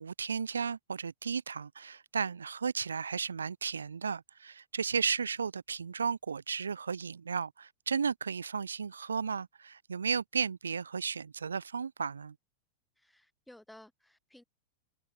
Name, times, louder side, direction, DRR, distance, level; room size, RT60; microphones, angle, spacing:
voice 1, 0.0-12.4, right 6 dB, 70° right, 0.3 m, -34 dB
voice 2, 13.0-14.4, left 1 dB, 5° left, 6.6 m, -56 dB
figure-of-eight pair, 90°, 0 cm